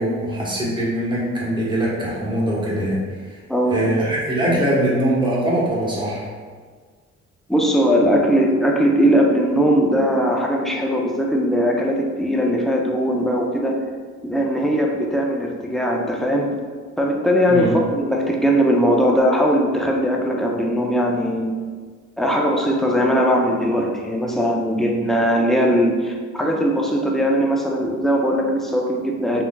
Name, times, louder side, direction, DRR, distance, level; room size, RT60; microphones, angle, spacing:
voice 1, 0.0-3.0 3.3-3.4 3.7-6.3 17.5-17.7, right 1 dB, 15° right, -6 dB, 1.1 m, -22 dB
voice 2, 7.5-13.8 14.2-16.5 17.0-21.6 22.2-29.4, equal, ahead, -1 dB, 0.4 m, -19 dB
3.8 x 2.7 x 2.2 m, 1.6 s
cardioid pair, 90°, 30 cm